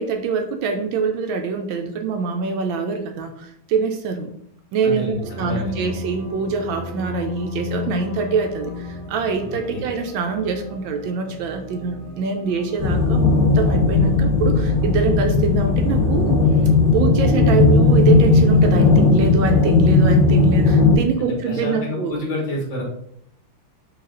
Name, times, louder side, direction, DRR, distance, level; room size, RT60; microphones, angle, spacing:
voice 1, 0.0-4.3 4.7-16.4 16.9-22.1, right 5 dB, 75° right, 5 dB, 1.2 m, -24 dB
voice 2, 4.8-5.9 9.7-9.9 21.2-22.8, left 1 dB, 65° left, -2 dB, 2.0 m, -29 dB
sound 1, 5.2-13.4, left 3 dB, 55° right, 1.2 m, -34 dB
sound 2, 12.8-20.9, left 3 dB, 30° left, 1.5 m, -16 dB
4.8 x 2.7 x 3.7 m, 0.71 s
omnidirectional pair, 2.3 m